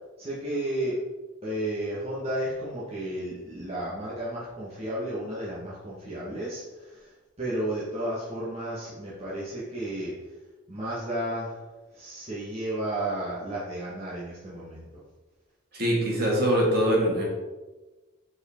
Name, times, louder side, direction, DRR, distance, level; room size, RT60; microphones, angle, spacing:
voice 1, 0.2-1.0 1.4-7.1 7.4-10.1 10.7-11.6 11.9-14.9, right 1 dB, 30° right, -8 dB, 1.6 m, -32 dB
voice 2, 15.7-17.2, equal, 50° right, -3 dB, 2.3 m, -23 dB
7.2 x 4.8 x 4.5 m, 1.2 s
head